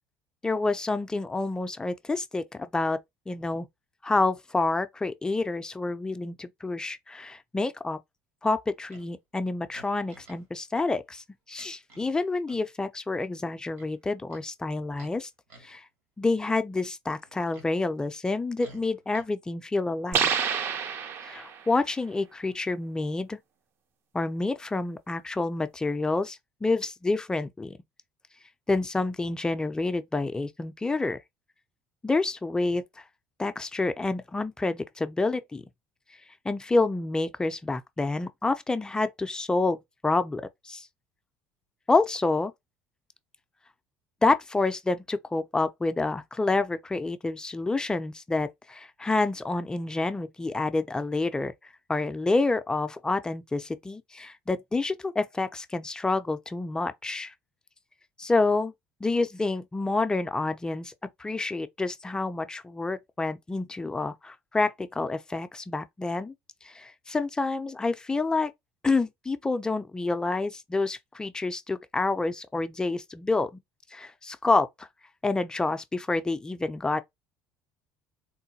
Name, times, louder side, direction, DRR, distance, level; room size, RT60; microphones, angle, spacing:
voice 1, 0.4-3.0 3.3-3.7 4.0-8.0 8.4-15.3 15.6-15.8 16.2-20.3 21.2-23.4 24.1-27.8 28.7-31.2 32.0-32.8 33.4-35.6 36.4-40.9 41.9-42.5 44.2-51.5 51.9-57.3 58.2-58.7 59.0-60.9 61.2-66.3 66.6-68.5 68.8-73.6 73.9-74.9 75.2-77.0, left 3 dB, 15° left, 0.4 m, -28 dB
Livestock farm animals working animals, 8.9-9.1 9.7-10.5 10.7-10.9 11.6-12.1 12.4-12.7 13.7-14.5 14.9-15.2 15.5-15.8 17.1-17.7 18.6-19.3, right 2 dB, 85° right, 1.8 m, -53 dB
sound 1, 20.1-21.7, right 7 dB, 55° right, 0.5 m, -28 dB
3.8 x 2.1 x 2.7 m
supercardioid pair, 90°, 5 cm